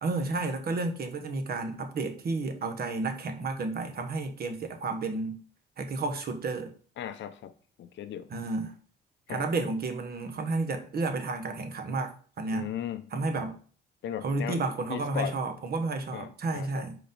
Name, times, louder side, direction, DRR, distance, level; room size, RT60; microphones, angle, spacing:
voice 1, 0.0-5.4 5.8-6.7 8.3-8.7 9.3-12.1 12.4-12.7 13.1-13.5 14.2-17.0, right 3 dB, 50° right, 1.2 m, -31 dB
voice 2, 7.0-7.5 7.8-8.3 9.3-9.5 12.5-13.1 14.0-14.6 14.9-15.4 16.1-16.8, left 10 dB, 70° left, 0.6 m, -36 dB
4.9 x 4.0 x 5.2 m
cardioid pair, 90°, 20 cm